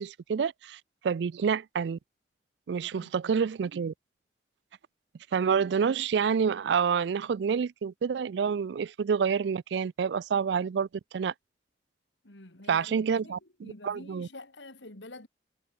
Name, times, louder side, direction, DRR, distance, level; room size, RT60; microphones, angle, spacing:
voice 1, 0.0-2.0 2.7-3.9 5.3-10.9 11.1-11.3 12.7-14.3, right 6 dB, 70° right, 0.4 m, -28 dB
voice 2, 12.2-15.3, left 2 dB, 85° left, 3.4 m, -48 dB
head